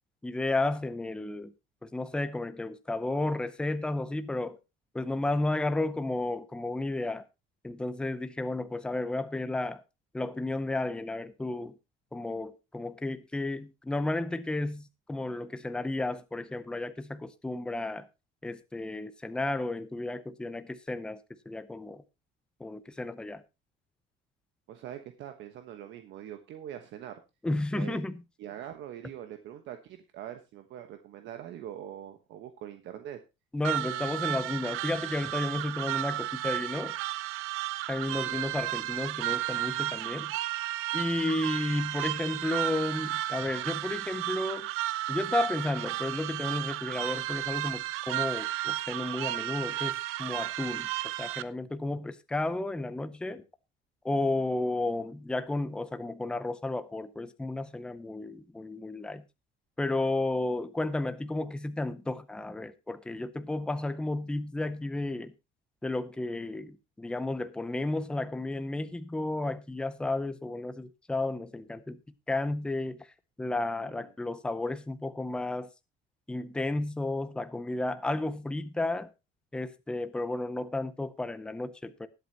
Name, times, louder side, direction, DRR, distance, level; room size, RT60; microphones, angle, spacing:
voice 1, 0.2-1.5 1.8-4.6 4.9-7.2 7.6-9.8 10.1-11.8 12.1-18.1 18.4-21.2 21.5-22.0 22.6-23.4 27.4-28.2 33.5-37.0 37.9-40.4 40.9-44.7 45.1-53.4 54.0-59.2 59.8-65.3 65.8-72.0 72.3-73.1 73.4-75.7 76.3-79.1 79.5-82.1, left 2 dB, 5° left, 0.6 m, -32 dB
voice 2, 24.7-27.2 27.7-28.0 28.4-33.2 38.1-38.4 73.8-73.9, right 11 dB, 60° right, 1.2 m, -43 dB
sound 1, 33.6-51.4, right 16 dB, 80° right, 0.7 m, -33 dB
20.0 x 8.1 x 2.9 m
cardioid pair, 175°, 21 cm